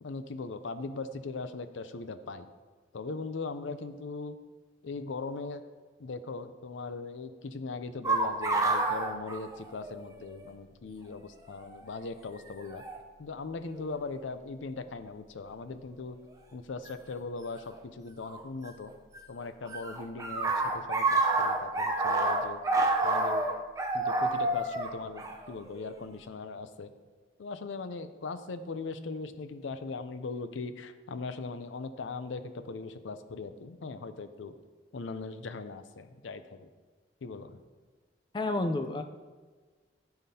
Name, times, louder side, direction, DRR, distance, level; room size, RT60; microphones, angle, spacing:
voice 1, 0.0-2.5 2.9-4.4 4.8-5.6 6.0-12.8 13.2-16.2 16.5-18.9 19.3-22.6 23.0-23.6 23.9-26.9 27.4-34.5 34.9-36.7 37.2-37.6, left 3 dB, 80° left, 10 dB, 0.5 m, -39 dB
sound 1, 8.0-10.1 10.4-10.5 11.5-11.8 12.8-13.0 13.7-14.2 16.9-17.0 18.3-19.2 19.4-26.0, right 2 dB, 15° right, 0.6 m, -29 dB
voice 2, 38.3-39.0, left 2 dB, 25° left, 7 dB, 0.4 m, -30 dB
12.5 x 5.8 x 2.8 m, 1.4 s
head